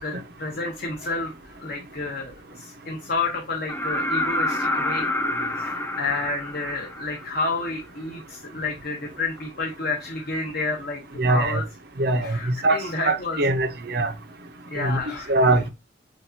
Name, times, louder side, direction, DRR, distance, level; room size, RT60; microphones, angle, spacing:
voice 1, 0.0-5.1 5.6-11.0 11.3-11.6 12.2-13.4 14.7-15.3, left 3 dB, 50° left, 1.0 m, -30 dB
sound 1, 3.7-7.5 9.4-9.5, left 1 dB, 10° left, 0.5 m, -27 dB
voice 2, 11.2-11.6 12.0-12.4 12.6-12.8 13.0-14.1 14.8-15.0 15.3-15.7, right 2 dB, 50° right, 0.7 m, -21 dB
7.4 x 2.5 x 2.8 m
head